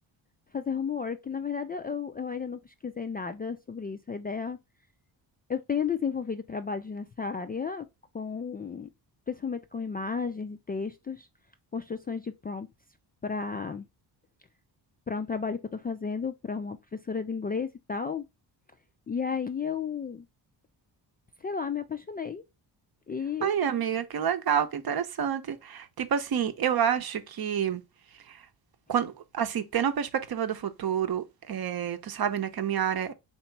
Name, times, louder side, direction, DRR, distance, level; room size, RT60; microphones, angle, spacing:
voice 1, 0.5-4.6 5.5-7.9 8.1-8.9 9.3-11.3 11.7-12.7 13.2-13.8 15.1-16.8 17.0-18.2 19.1-20.2 21.4-22.4 23.1-23.6, left 6 dB, 20° left, 0.3 m, -33 dB
voice 2, 23.4-27.8 28.3-28.4 28.9-33.1, right 8 dB, 50° right, 0.8 m, -28 dB
2.9 x 2.8 x 4.5 m
supercardioid pair, 55°, 49 cm